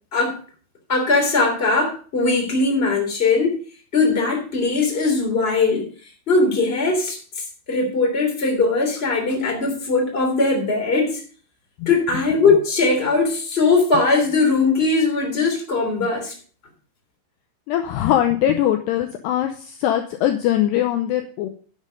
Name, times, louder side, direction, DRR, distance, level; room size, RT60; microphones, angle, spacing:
voice 1, 0.9-3.6 3.9-5.9 6.3-11.2 11.8-16.3, left 3 dB, 15° left, 1 dB, 2.7 m, -20 dB
voice 2, 17.7-21.5, left 11 dB, 80° left, 6 dB, 2.6 m, -21 dB
10.0 x 7.5 x 5.2 m, 0.42 s
omnidirectional pair, 5.4 m